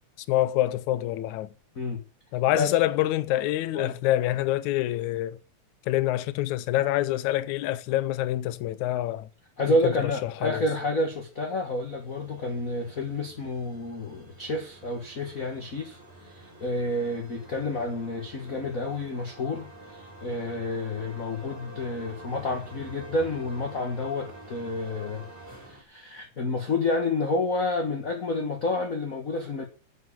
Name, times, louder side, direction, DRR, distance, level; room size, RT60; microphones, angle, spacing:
voice 1, 0.3-1.5 2.3-5.4 5.9-9.3 9.7-10.7, left 14 dB, 80° left, 2.1 m, -26 dB
voice 2, 9.6-16.0 16.3-25.3 25.7-29.6, left 2 dB, 35° left, 1.6 m, -29 dB
sound 1, 11.1-25.8, right 2 dB, 5° right, 2.7 m, -47 dB
7.8 x 7.7 x 8.5 m
omnidirectional pair, 3.4 m